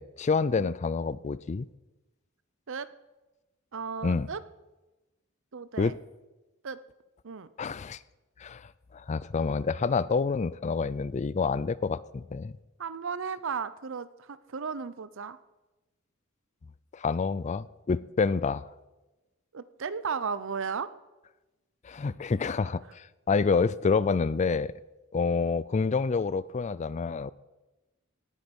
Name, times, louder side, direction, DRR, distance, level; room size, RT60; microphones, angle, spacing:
voice 1, 0.0-1.7 4.0-4.3 5.8-6.0 7.6-8.0 8.4-12.5 16.9-18.6 21.8-24.7 25.1-27.3, left 4 dB, 35° left, 19 dB, 0.4 m, -28 dB
voice 2, 3.7-4.4 5.5-5.9 6.6-6.8 7.2-7.5 12.8-15.4 19.5-20.9, right 5 dB, 65° right, 15 dB, 0.7 m, -35 dB
17.5 x 10.5 x 5.4 m, 1.1 s
head